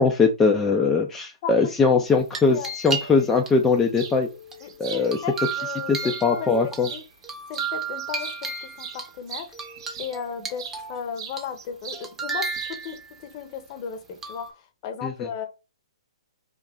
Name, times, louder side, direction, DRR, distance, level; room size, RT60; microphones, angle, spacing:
voice 1, 0.0-4.3 4.8-5.2 5.9-6.9 15.0-15.1, left 4 dB, 10° left, 3 dB, 0.3 m, -21 dB
voice 2, 2.1-2.7 4.6-6.5 6.9-7.0 7.5-8.3 8.6-9.5 10.0-14.4 14.8-15.5, left 7 dB, 35° left, 6 dB, 0.7 m, -35 dB
sound 1, 2.1-3.5 4.0-6.8 7.2-9.1 9.5-11.0 11.4-11.7 11.9-13.2 14.2-14.5, right 4 dB, 10° right, 0.7 m, -33 dB
sound 2, 3.9-4.2 4.6-6.3 6.7-7.3 7.5-10.8 11.2-12.1 12.3-13.0, right 7 dB, 45° right, 0.7 m, -39 dB
2.9 x 2.4 x 3.5 m, 0.28 s
figure-of-eight pair, 125°, 3 cm